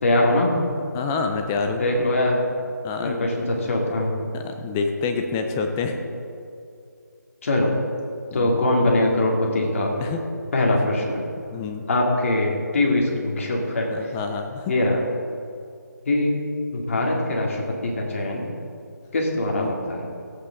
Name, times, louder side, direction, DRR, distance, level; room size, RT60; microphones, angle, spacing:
voice 1, 0.0-0.5 1.8-2.4 3.0-4.1 7.4-7.7 8.3-9.9 10.5-11.2 11.9-14.1 14.7-15.0 16.1-16.4 16.7-18.5 19.1-20.1, left 1 dB, 45° left, -1 dB, 2.2 m, -22 dB
voice 2, 0.9-1.8 2.8-3.3 4.3-6.0 8.3-8.5 10.0-10.2 11.5-11.8 13.9-14.7 19.5-19.7, left 4 dB, 10° left, 6 dB, 0.3 m, -27 dB
14.5 x 8.4 x 3.8 m, 2.5 s
figure-of-eight pair, 160°, 10 cm